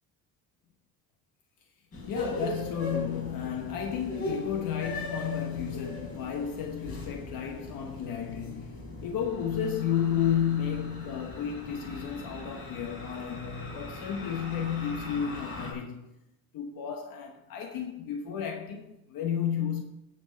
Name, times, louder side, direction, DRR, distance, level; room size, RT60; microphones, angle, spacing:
sound 1, 1.9-15.7, left 2 dB, 40° left, 4.2 m, -39 dB
voice 1, 2.1-16.1 16.5-19.8, left 8 dB, 75° left, 1.1 m, -32 dB
10.0 x 6.1 x 6.1 m
cardioid pair, 115°, 35 cm